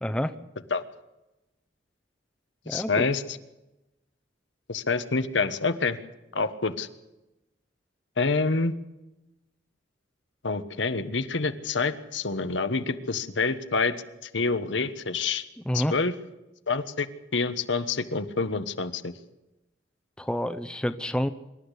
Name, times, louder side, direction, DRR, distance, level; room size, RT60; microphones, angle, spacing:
voice 1, 0.0-0.3 2.7-3.0 15.7-15.9 20.2-21.3, equal, 5° left, 8 dB, 0.8 m, -28 dB
voice 2, 2.7-3.4 4.7-6.0 6.3-6.9 8.2-8.7 10.4-14.0 14.3-15.4 15.7-16.1 16.7-17.1 17.3-19.1, left 4 dB, 80° left, 10 dB, 1.3 m, -27 dB
25.5 x 12.5 x 8.3 m, 0.97 s
head